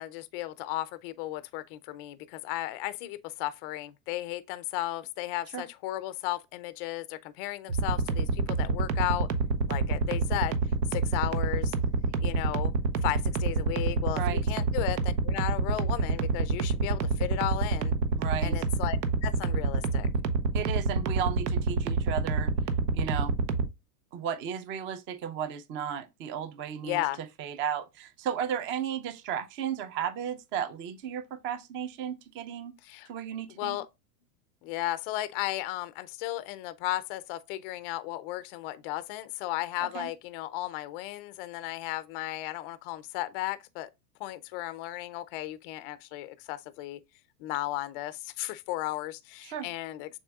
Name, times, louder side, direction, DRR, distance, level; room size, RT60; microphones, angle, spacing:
voice 1, 0.0-9.3 9.7-10.6 10.9-11.7 12.2-12.7 13.0-17.9 18.4-20.1 26.8-27.2 32.8-33.1 33.6-33.9 34.6-43.9 44.2-47.0 47.4-50.1, left 16 dB, 40° left, 0.4 m, -35 dB
sound 1, 7.7-23.7, right 4 dB, 85° right, 0.9 m, -27 dB
voice 2, 18.2-18.6 20.5-22.5 22.9-23.3 24.1-27.0 27.4-32.7 33.1-33.8 39.8-40.1 49.4-49.7, right 8 dB, 25° right, 0.5 m, -34 dB
6.4 x 3.6 x 2.2 m
hypercardioid pair, 120°, 49 cm